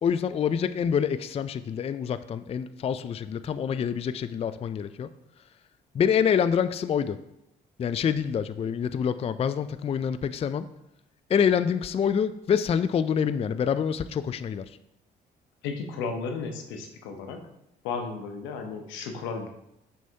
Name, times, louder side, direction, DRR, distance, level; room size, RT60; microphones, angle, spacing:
voice 1, 0.0-5.1 5.9-7.2 7.8-10.7 11.3-14.7, left 7 dB, 35° left, 12 dB, 0.3 m, -26 dB
voice 2, 15.6-17.4 17.8-19.5, left 4 dB, 85° left, 5 dB, 0.8 m, -34 dB
6.1 x 5.6 x 2.8 m, 0.84 s
supercardioid pair, 65°, 19 cm